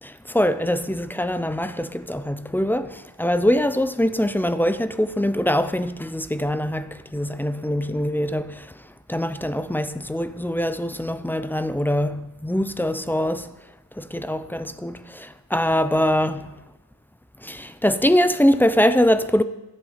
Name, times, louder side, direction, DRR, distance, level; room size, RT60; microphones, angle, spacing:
voice 1, 0.0-13.5 13.9-16.6 17.4-19.4, equal, 5° left, 0.5 m, -23 dB
14.0 x 8.1 x 5.8 m
wide cardioid pair, 100°, 42 cm